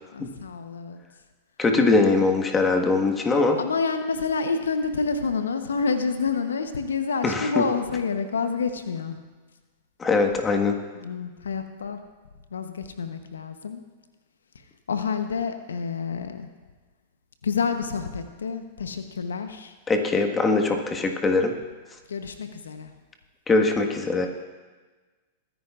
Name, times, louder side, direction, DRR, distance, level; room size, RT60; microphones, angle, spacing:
voice 1, 0.1-1.0 1.8-2.0 3.6-9.2 11.0-12.0 12.5-13.8 14.9-16.5 17.4-19.7 22.1-22.9, left 5 dB, 85° left, 8 dB, 0.9 m, -28 dB
voice 2, 1.6-3.6 7.2-7.6 10.0-10.7 19.9-21.5 23.5-24.3, left 3 dB, 20° left, 3 dB, 1.6 m, -21 dB
23.0 x 10.0 x 2.5 m, 1.3 s
hypercardioid pair, 105°, 0 cm